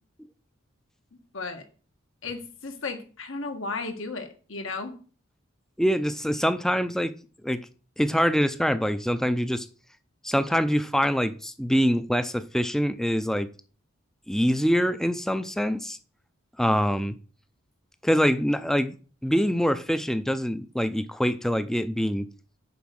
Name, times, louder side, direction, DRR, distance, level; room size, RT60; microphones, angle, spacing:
voice 1, 1.1-1.6 2.2-4.9, left 3 dB, 75° left, 5 dB, 1.7 m, -34 dB
voice 2, 5.8-7.1 7.4-7.6 8.0-9.7 10.2-13.5 14.3-16.0 16.6-17.1 18.0-18.9 19.2-22.3, equal, ahead, 11 dB, 0.4 m, -24 dB
7.0 x 5.1 x 6.4 m, 0.39 s
head